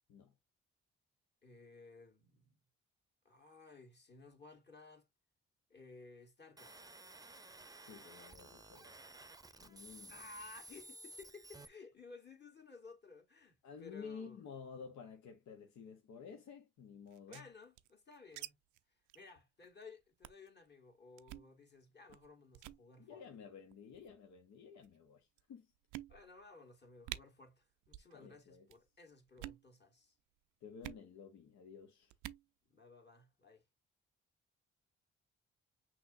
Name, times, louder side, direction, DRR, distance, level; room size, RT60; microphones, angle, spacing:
voice 1, 1.4-2.6 3.2-5.1 5.7-6.8 10.1-14.4 17.3-18.6 19.1-23.2 26.1-30.2 32.7-33.6, left 3 dB, 35° left, 2.0 m, -57 dB
sound 1, 6.6-11.7, right 2 dB, 10° right, 0.7 m, -55 dB
voice 2, 7.8-9.1 9.6-10.2 13.6-17.5 23.0-25.7 28.1-28.7 30.6-32.1, left 6 dB, 65° left, 0.9 m, -52 dB
sound 2, 17.1-18.5 18.7-18.8 19.1-19.3 19.6-19.8 20.2-20.5 21.2-21.5 22.1-22.3 22.5-22.8 23.7-24.1 24.8-24.9 25.4-25.5 25.9-26.5 26.7-26.8 27.0-27.2 27.9-28.1 28.4-28.8 29.3-29.6 30.8-31.0 32.1-32.4, right 16 dB, 75° right, 0.5 m, -48 dB
5.8 x 3.0 x 2.5 m
hypercardioid pair, 45°, 31 cm